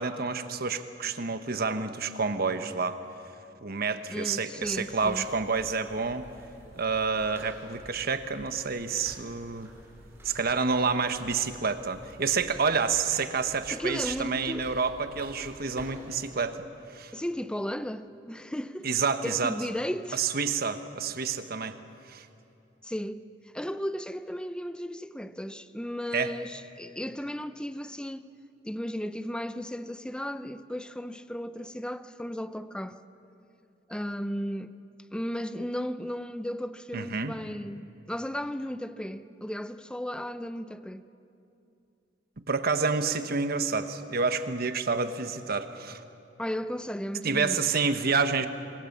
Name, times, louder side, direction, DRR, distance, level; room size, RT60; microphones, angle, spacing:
voice 1, 0.0-3.0 3.6-6.2 6.8-9.7 10.2-16.6 16.9-17.1 18.8-19.6 20.1-21.7 22.1-22.3 26.1-26.3 36.9-37.3 42.5-46.0 47.2-48.5, right 5 dB, 55° right, 1.2 m, -28 dB
voice 2, 4.1-5.2 13.7-14.7 17.1-18.9 19.2-20.2 22.8-23.2 23.5-28.3 28.6-33.0 33.9-34.7 35.1-41.1 46.4-47.6, equal, 5° left, 0.6 m, -35 dB
sound 1, 4.6-16.2, right 1 dB, 15° right, 5.7 m, -51 dB
27.0 x 22.0 x 7.3 m
head